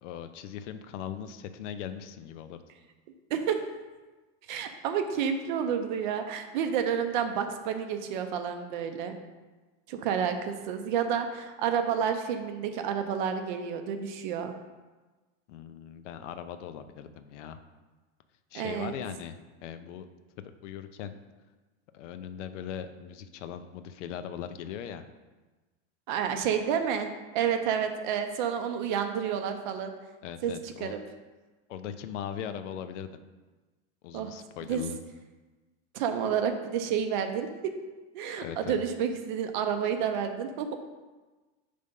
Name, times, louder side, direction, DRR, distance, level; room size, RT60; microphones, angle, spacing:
voice 1, 0.0-2.6 15.5-17.6 18.5-19.4 19.6-20.1 20.6-21.2 21.9-25.0 30.2-30.9 31.7-33.1 34.0-35.0 38.4-38.8, left 9 dB, 85° left, 9 dB, 0.6 m, -39 dB
voice 2, 3.3-3.7 4.5-9.2 9.9-14.5 18.5-18.9 26.1-29.9 30.4-31.0 34.1-34.4 34.6-34.8 35.9-37.5 38.1-40.8, right 7 dB, 45° right, 7 dB, 0.5 m, -30 dB
5.5 x 3.4 x 5.2 m, 1.2 s
supercardioid pair, 170°, 35 cm